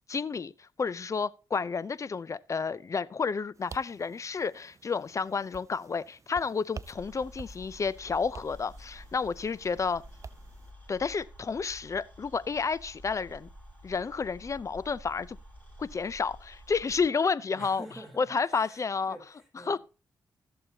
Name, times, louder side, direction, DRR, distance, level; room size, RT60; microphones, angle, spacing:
voice 1, 0.1-10.0 10.9-13.5 13.8-15.4 15.8-17.9 18.2-19.2 19.7-19.8, left 5 dB, 40° left, 0.5 m, -31 dB
sound 1, 3.5-10.7, right 5 dB, 40° right, 0.5 m, -50 dB
sound 2, 6.8-17.0, equal, 20° left, 6.8 m, -50 dB
voice 2, 17.5-18.8 19.1-19.8, right 1 dB, ahead, 3.8 m, -48 dB
16.0 x 6.8 x 2.9 m
cardioid pair, 65°, 8 cm